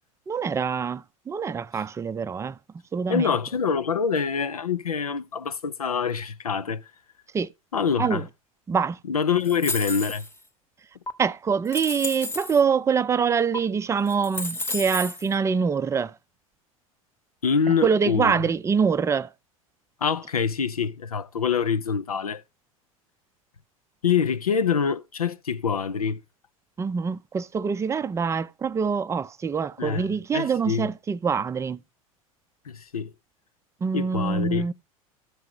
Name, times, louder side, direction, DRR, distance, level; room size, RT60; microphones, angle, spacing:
voice 1, 0.3-2.6 2.9-3.3 7.3-7.5 8.0-8.2 8.7-9.0 11.2-16.1 17.8-19.3 26.8-31.8 33.8-34.7, right 6 dB, 15° right, 0.4 m, -25 dB
voice 2, 3.1-6.9 7.7-8.3 9.0-10.3 17.4-18.3 20.0-22.4 24.0-26.2 29.8-30.9 32.7-33.1 33.9-34.7, left 6 dB, 85° left, 0.5 m, -25 dB
sound 1, 9.4-10.4 11.1-11.2 11.7-12.6 13.5-13.6 14.1-15.3, left 2 dB, 10° left, 1.0 m, -32 dB
13.5 x 4.7 x 3.7 m
figure-of-eight pair, 80°, 18 cm